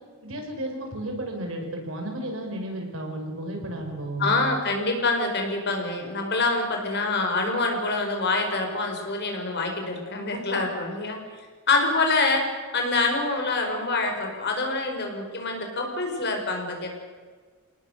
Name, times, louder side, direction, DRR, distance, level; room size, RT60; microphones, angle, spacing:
voice 1, 0.2-4.4, right 1 dB, 70° right, 2 dB, 5.6 m, -33 dB
voice 2, 4.2-11.2 11.7-12.5 12.7-16.9, left 3 dB, 55° left, 3 dB, 5.1 m, -26 dB
28.0 x 18.5 x 6.8 m, 1.5 s
head